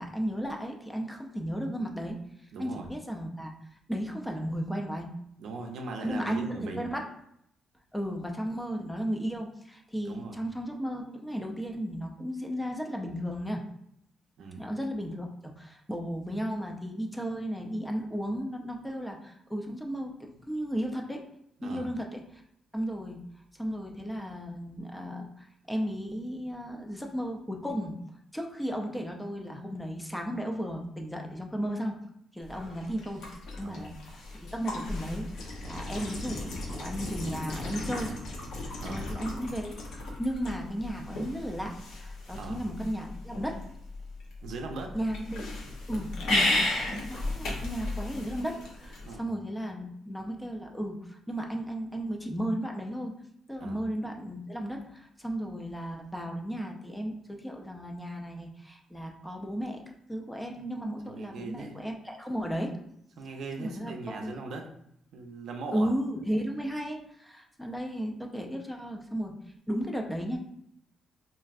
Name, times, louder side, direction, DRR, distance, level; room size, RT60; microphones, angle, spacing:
voice 1, 0.0-2.2 2.6-3.5 3.9-5.1 6.0-7.0 7.9-13.6 14.6-21.2 21.6-22.2 22.7-23.2 23.6-25.3 25.7-28.0 28.3-31.9 32.3-33.2 33.6-33.9 34.3-38.1 38.9-39.8 40.2-43.6 44.9-45.5 45.9-46.6 47.1-53.1 53.5-62.8 63.6-64.3 65.7-69.3 69.7-70.4, equal, 5° left, 2 dB, 0.4 m, -34 dB
voice 2, 2.5-2.9 5.4-6.9 10.1-10.4 14.4-14.7 21.6-21.9 33.6-33.8 38.8-39.1 42.3-42.6 44.4-45.0 49.0-49.2 53.6-53.8 61.0-61.8 63.2-64.7 65.1-65.9, right 3 dB, 70° right, 3 dB, 0.5 m, -39 dB
sound 1, 32.4-49.2, left 2 dB, 75° left, 0.7 m, -35 dB
3.0 x 2.5 x 2.4 m, 0.73 s
cardioid pair, 90°, 0 cm